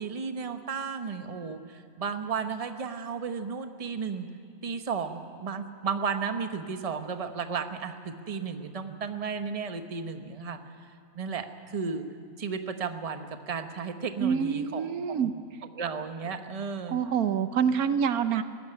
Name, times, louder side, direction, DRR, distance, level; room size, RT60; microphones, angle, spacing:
voice 1, 0.0-4.3 4.6-10.6 11.1-12.0 12.4-15.2 15.8-17.0, right 5 dB, 30° right, 7 dB, 1.0 m, -34 dB
voice 2, 14.2-15.3 16.9-18.4, right 7 dB, 90° right, 11 dB, 1.3 m, -26 dB
17.5 x 15.5 x 9.8 m, 2.6 s
omnidirectional pair, 1.5 m